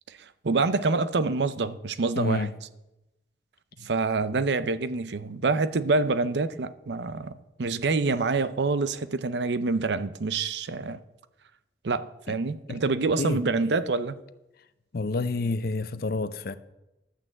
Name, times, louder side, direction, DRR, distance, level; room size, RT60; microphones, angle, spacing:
voice 1, 0.1-2.5 3.8-11.0 11.8-14.2, right 3 dB, 75° right, 0.6 m, -26 dB
voice 2, 2.2-2.5 3.8-3.9 12.3-12.4 12.7-12.8 13.2-13.4 14.9-16.6, left 3 dB, 55° left, 0.6 m, -29 dB
11.5 x 6.1 x 7.7 m
head